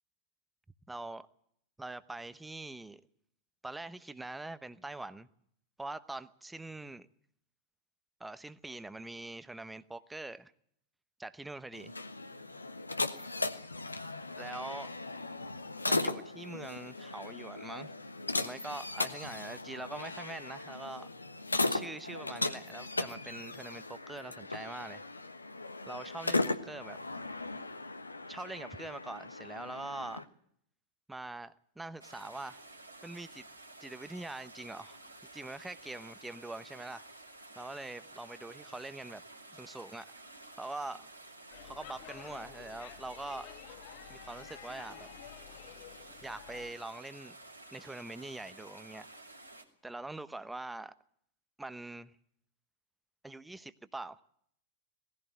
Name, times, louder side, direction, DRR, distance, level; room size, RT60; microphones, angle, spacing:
voice 1, 0.9-1.3 1.8-3.0 3.6-5.3 5.8-7.1 8.2-10.5 11.2-11.9 14.4-14.9 15.9-17.9 18.3-21.1 21.7-25.0 25.9-27.0 28.3-30.3 31.1-32.6 33.0-33.4 33.8-35.0 35.3-37.0 37.6-39.2 39.5-40.1 40.6-41.1 41.6-43.5 44.1-45.1 46.2-47.4 47.7-49.1 49.8-50.9 51.6-52.1 53.2-54.2, right 2 dB, 5° right, 14 dB, 0.9 m, -43 dB
sound 1, 11.7-30.2, left 2 dB, 80° left, 1.2 m, -37 dB
sound 2, 32.0-49.6, right 2 dB, 85° right, 2.9 m, -52 dB
Speech / Shout / Subway metro underground, 41.5-46.7, left 12 dB, 50° left, 1.3 m, -51 dB
19.5 x 15.5 x 9.4 m, 0.68 s
figure-of-eight pair, 90°, 0 cm